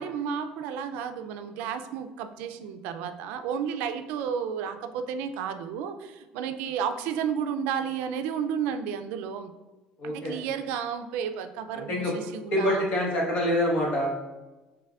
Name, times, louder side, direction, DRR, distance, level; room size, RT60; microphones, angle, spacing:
voice 1, 0.0-9.5 10.0-12.8, right 7 dB, 85° right, 8 dB, 0.3 m, -32 dB
voice 2, 10.0-10.4 11.7-12.1 12.5-14.2, left 1 dB, 55° left, -3 dB, 1.4 m, -26 dB
5.6 x 3.3 x 2.4 m, 1.1 s
cardioid pair, 150°, 3 cm